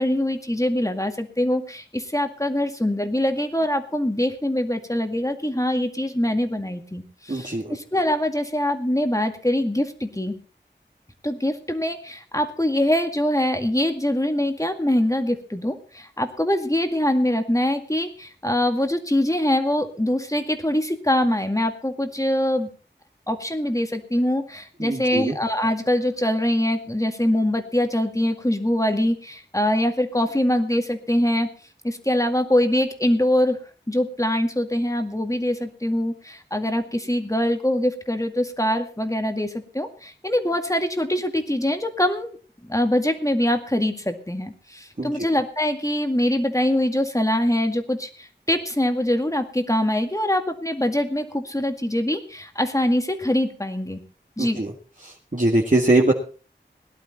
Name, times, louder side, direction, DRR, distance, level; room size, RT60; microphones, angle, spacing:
voice 1, 0.0-10.4 11.2-22.7 23.3-31.5 31.8-33.6 33.9-42.4 42.6-54.0 54.4-54.6, left 1 dB, 15° left, 6 dB, 2.1 m, -23 dB
voice 2, 7.3-7.7 24.8-25.3 45.0-45.1 54.4-54.7 55.0-56.1, right 2 dB, 45° right, -1 dB, 2.1 m, -22 dB
18.0 x 11.5 x 4.3 m, 0.38 s
wide cardioid pair, 40°, 19 cm